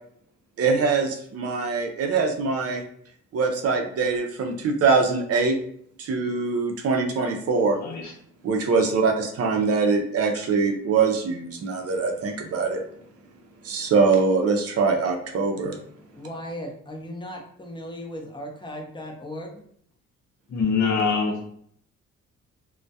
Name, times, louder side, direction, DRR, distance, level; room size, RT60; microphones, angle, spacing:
voice 1, 0.6-2.8 3.3-5.6 6.0-7.8 8.4-12.8 13.6-15.8, right 4 dB, 55° right, 4 dB, 0.5 m, -23 dB
voice 2, 7.8-8.1 20.5-21.4, left 5 dB, 70° left, 1 dB, 0.7 m, -24 dB
voice 3, 16.1-19.6, equal, 15° left, 2 dB, 0.5 m, -37 dB
2.2 x 2.1 x 2.6 m, 0.64 s
cardioid pair, 100°, 29 cm